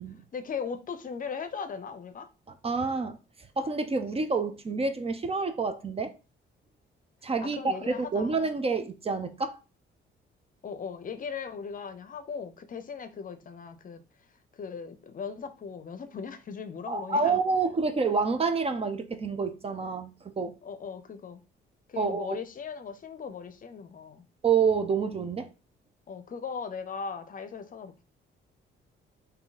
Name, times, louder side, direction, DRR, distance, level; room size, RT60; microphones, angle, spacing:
voice 1, 0.3-2.3 7.4-8.3 10.6-14.0 14.5-17.4 20.6-21.4 21.9-24.2 26.1-28.0, left 6 dB, 45° left, 0.6 m, -38 dB
voice 2, 2.6-3.2 3.6-6.1 7.2-9.6 16.9-20.6 22.0-22.4 24.4-25.5, right 4 dB, 30° right, 0.6 m, -28 dB
3.6 x 2.7 x 4.0 m
cardioid pair, 90°, 20 cm